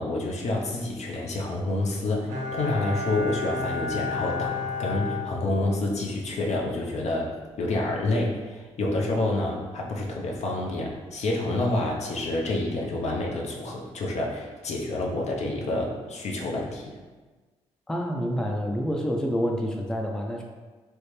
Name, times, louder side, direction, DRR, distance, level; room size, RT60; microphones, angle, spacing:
voice 1, 0.0-16.9, left 2 dB, 60° left, -1 dB, 0.6 m, -28 dB
Bowed string instrument, 2.3-6.0 6.3-6.4, left 3 dB, 70° right, 0.5 m, -32 dB
voice 2, 17.9-20.4, equal, 5° left, 1 dB, 0.5 m, -28 dB
3.3 x 2.0 x 3.1 m, 1.3 s
hypercardioid pair, 45°, 13 cm